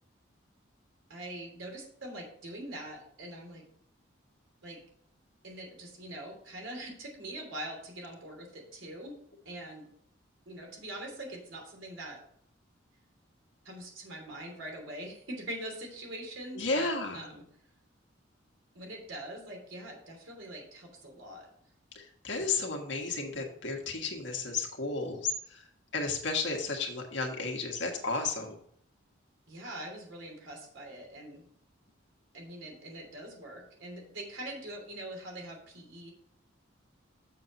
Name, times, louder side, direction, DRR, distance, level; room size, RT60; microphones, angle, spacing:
voice 1, 1.1-3.6 4.6-4.8 5.4-9.1 9.4-9.9 10.4-12.2 13.6-17.4 18.7-21.5 29.5-31.5 32.3-36.1, right 1 dB, 75° right, 1 dB, 3.0 m, -43 dB
voice 2, 16.5-17.3 21.9-25.7 25.9-28.6, left 3 dB, 60° left, 2 dB, 1.6 m, -33 dB
7.4 x 6.8 x 4.1 m, 0.65 s
head